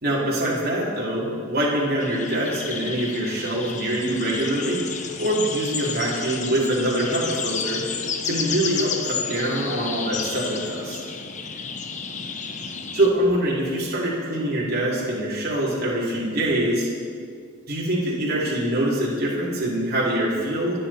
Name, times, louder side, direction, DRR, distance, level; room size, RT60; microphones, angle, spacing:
voice 1, 0.0-7.8 8.2-11.0 12.9-16.9 17.7-20.8, right 1 dB, 45° right, -5 dB, 3.3 m, -24 dB
sound 1, 2.0-13.1, left 6 dB, 35° left, 1.0 m, -31 dB
27.5 x 10.0 x 4.3 m, 2.1 s
head